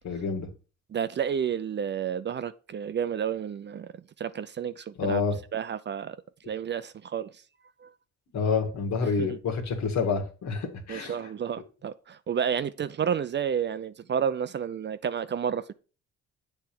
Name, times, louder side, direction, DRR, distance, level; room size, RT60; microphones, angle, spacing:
voice 1, 0.0-0.5 5.0-5.4 8.3-11.1, left 5 dB, 65° left, 1.8 m, -28 dB
voice 2, 0.9-3.9 4.2-5.2 5.5-6.2 6.5-7.3 7.8-7.9 9.2-9.4 10.9-15.7, right 8 dB, 35° right, 0.4 m, -30 dB
7.7 x 3.5 x 5.9 m
cardioid pair, 90°, 30 cm